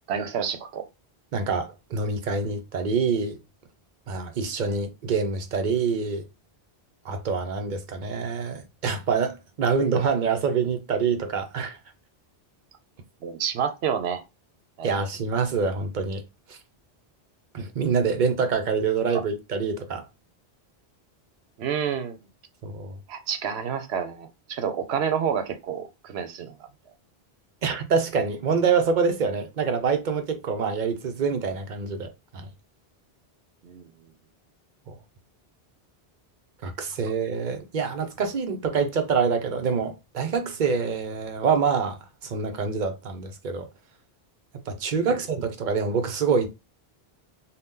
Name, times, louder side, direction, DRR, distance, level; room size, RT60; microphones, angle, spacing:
voice 1, 0.1-0.8 13.2-14.2 14.8-14.9 21.6-22.2 23.1-26.5 33.6-33.9 45.1-45.2, right 7 dB, 85° right, 0.9 m, -29 dB
voice 2, 1.3-3.4 4.1-6.2 7.0-11.8 14.8-16.2 16.5-16.6 17.5-20.0 22.6-23.0 27.6-32.5 34.9-35.0 36.6-43.7 44.7-46.5, right 5 dB, 55° right, 0.7 m, -26 dB
2.7 x 2.2 x 3.5 m
omnidirectional pair, 1.1 m